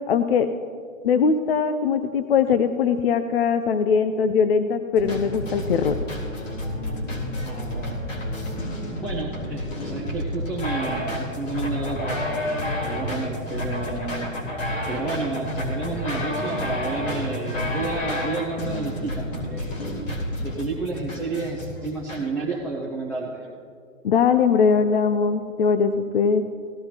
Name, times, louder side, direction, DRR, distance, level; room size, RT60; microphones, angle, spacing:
voice 1, 0.1-0.5 1.0-5.9 24.0-26.5, left 6 dB, 45° left, 10 dB, 0.6 m, -21 dB
sound 1, 5.0-22.2, left 1 dB, 70° left, 4.0 m, -30 dB
voice 2, 7.4-8.0 9.0-12.4 12.8-14.3 14.9-19.8 20.4-23.5, right 3 dB, 5° left, -4 dB, 0.7 m, -31 dB
17.5 x 13.5 x 2.9 m, 2.2 s
hypercardioid pair, 135°, 40 cm